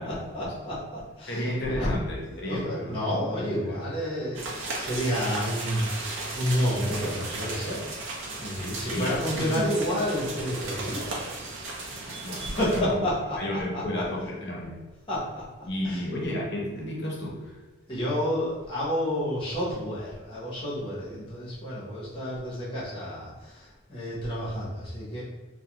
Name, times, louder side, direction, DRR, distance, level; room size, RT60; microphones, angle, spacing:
voice 1, 0.0-1.9 2.3-7.8 8.2-11.1 12.6-13.8 15.1-16.0 17.9-25.2, equal, 25° left, -8 dB, 0.8 m, -30 dB
voice 2, 1.3-3.0 3.3-3.4 3.7-3.8 8.5-9.7 11.8-13.0 13.4-14.8 15.7-17.6, left 1 dB, 55° left, -3 dB, 0.6 m, -33 dB
sound 1, 4.3-12.8, right 2 dB, 65° right, 0.5 m, -35 dB
2.4 x 2.1 x 2.8 m, 1.2 s
head